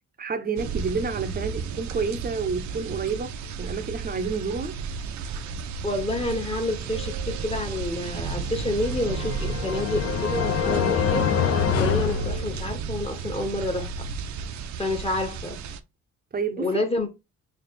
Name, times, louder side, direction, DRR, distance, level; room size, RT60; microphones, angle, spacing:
voice 1, 0.2-3.3 3.6-4.8 16.3-16.7, right 5 dB, 30° right, 0.7 m, -29 dB
sound 1, 0.6-15.8, right 5 dB, 70° right, 0.6 m, -33 dB
voice 2, 5.8-11.3 11.8-13.9 14.8-15.6 16.6-17.1, left 2 dB, 20° left, 1.2 m, -28 dB
Subway metro underground, 6.9-9.1 9.3-9.4 9.7-9.9 10.2-10.6 10.9-11.9, right 15 dB, 85° right, 1.0 m, -48 dB
sound 2, 8.6-13.1, left 7 dB, 55° left, 0.7 m, -26 dB
3.3 x 2.4 x 4.2 m
cardioid pair, 90°, 30 cm